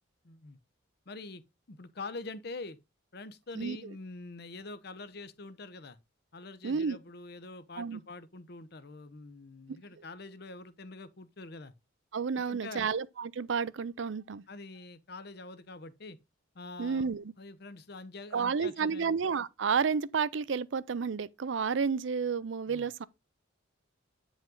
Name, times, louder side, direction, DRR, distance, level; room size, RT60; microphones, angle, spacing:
voice 1, 0.2-0.6 1.1-2.8 3.1-6.0 6.3-11.7 12.3-12.9 14.5-16.2 16.5-17.1 17.4-19.1 22.7-22.9, left 3 dB, 55° left, 0.8 m, -45 dB
voice 2, 6.6-7.0 7.8-8.0 12.1-14.4 16.8-17.2 18.3-23.1, right 5 dB, 65° right, 0.5 m, -31 dB
9.1 x 5.2 x 3.8 m
head